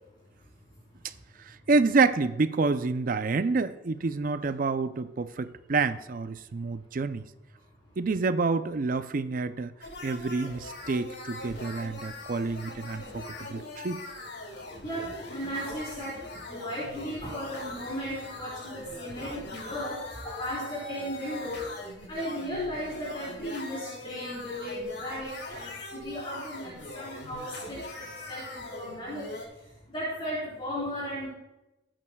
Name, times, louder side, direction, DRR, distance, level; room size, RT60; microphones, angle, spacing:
voice 1, 1.4-7.2 8.0-9.7 10.0-14.0, right 4 dB, 50° right, 12 dB, 0.5 m, -28 dB
sound 1, 9.8-29.4, left 2 dB, 80° left, 4.3 m, -42 dB
voice 2, 14.8-16.1 16.5-21.6 22.1-29.4 29.9-31.3, equal, 30° left, -9 dB, 4.1 m, -36 dB
20.5 x 8.9 x 2.3 m, 0.97 s
head